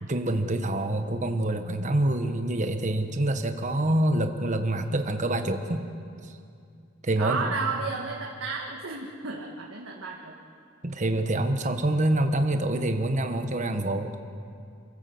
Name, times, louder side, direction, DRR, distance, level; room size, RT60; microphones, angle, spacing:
voice 1, 0.0-5.9 6.2-6.3 7.0-7.5 10.8-14.1, right 1 dB, 35° right, 6 dB, 1.2 m, -26 dB
voice 2, 7.2-10.3, right 4 dB, 80° right, -2 dB, 1.8 m, -32 dB
27.5 x 13.5 x 7.9 m, 2.4 s
head